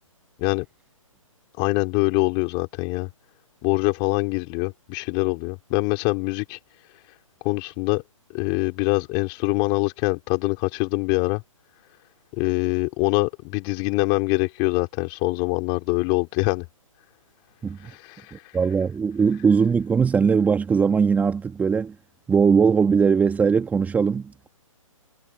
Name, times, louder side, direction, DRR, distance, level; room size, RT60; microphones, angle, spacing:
voice 1, 1.6-3.1 3.6-6.6 7.4-8.0 8.3-11.4 12.4-16.7 17.8-18.3, left 33 dB, 30° left, 3.9 m, -24 dB
voice 2, 17.6-17.9 18.3-22.0 22.3-24.5, right 6 dB, 10° right, 1.9 m, -20 dB
figure-of-eight pair, 135°, 18 cm